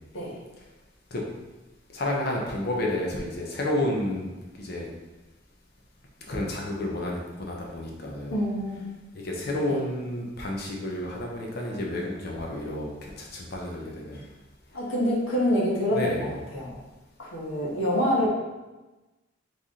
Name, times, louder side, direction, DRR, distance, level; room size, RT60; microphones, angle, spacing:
voice 1, 1.9-4.3 4.6-4.9 6.3-8.3 9.1-14.3 15.9-16.3, left 1 dB, 55° left, -1 dB, 0.9 m, -30 dB
voice 2, 8.3-8.8 9.6-9.8 14.7-16.8 17.2-18.3, equal, 85° left, -5 dB, 1.4 m, -26 dB
4.2 x 3.4 x 3.7 m, 1.1 s
head